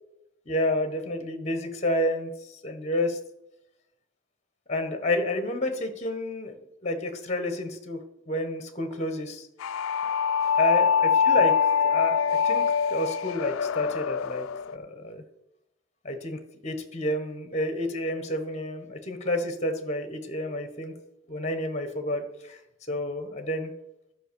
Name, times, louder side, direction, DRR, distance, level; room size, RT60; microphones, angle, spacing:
voice 1, 0.5-2.3 2.6-3.2 4.7-6.5 6.8-9.5 10.6-14.5 14.7-15.2 16.0-20.9 21.3-22.6 22.9-23.7, left 1 dB, 35° left, 7 dB, 1.3 m, -30 dB
sound 1, 9.6-14.7, left 6 dB, 85° left, 0.4 m, -24 dB
11.0 x 5.2 x 6.9 m, 0.88 s
head